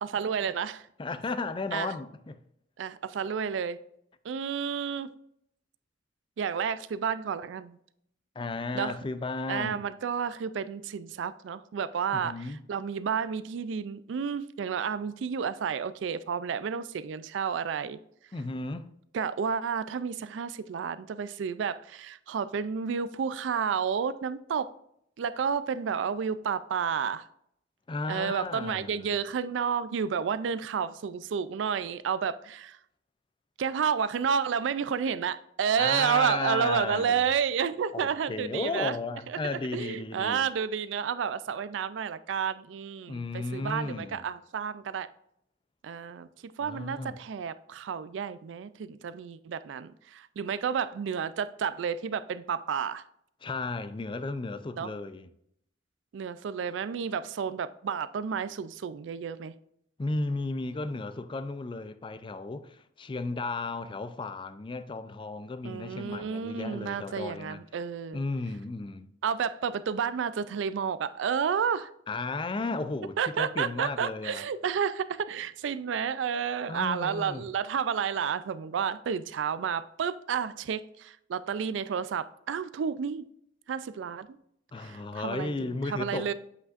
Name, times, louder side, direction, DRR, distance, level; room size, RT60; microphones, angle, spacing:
voice 1, 0.0-0.8 1.7-1.9 2.8-3.8 4.2-5.1 6.4-7.8 8.7-9.0 9.5-18.0 19.1-24.7 25.2-27.3 28.1-32.8 33.6-38.9 39.3-45.1 45.8-53.0 54.8-54.9 56.1-59.5 65.6-68.2 69.2-71.9 73.2-83.3 83.7-84.3 84.8-86.3, right 7 dB, 75° right, 0.4 m, -31 dB
voice 2, 1.0-2.4 8.4-9.9 12.1-12.6 18.3-18.9 27.9-29.1 35.8-37.3 37.9-40.4 43.1-44.3 46.6-47.2 53.4-55.3 60.0-67.6 68.1-69.1 72.1-74.4 76.7-77.5 84.7-86.3, left 3 dB, 25° left, 0.4 m, -34 dB
8.0 x 5.7 x 2.5 m
head